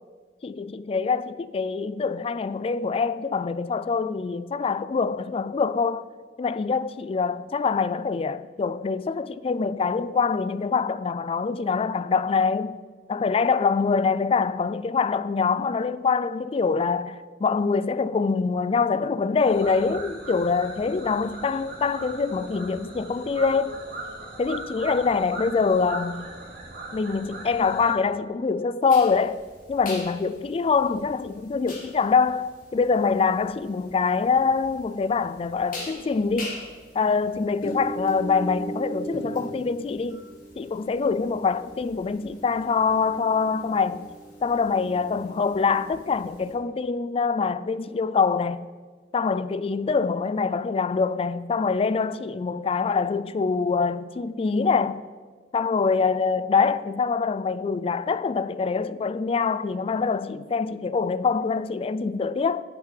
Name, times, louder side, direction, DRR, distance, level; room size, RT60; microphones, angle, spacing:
voice 1, 0.4-6.1 6.4-12.8 13.1-23.8 24.4-26.3 26.9-29.4 29.7-36.6 36.9-40.2 40.6-44.1 44.4-48.7 49.1-55.1 55.5-62.6, left 5 dB, 35° left, 0.3 m, -24 dB
sound 1, 19.4-27.9, right 2 dB, 55° right, 2.8 m, -39 dB
sound 2, 28.9-46.5, right 1 dB, 50° left, 2.7 m, -39 dB
10.5 x 7.7 x 4.8 m
head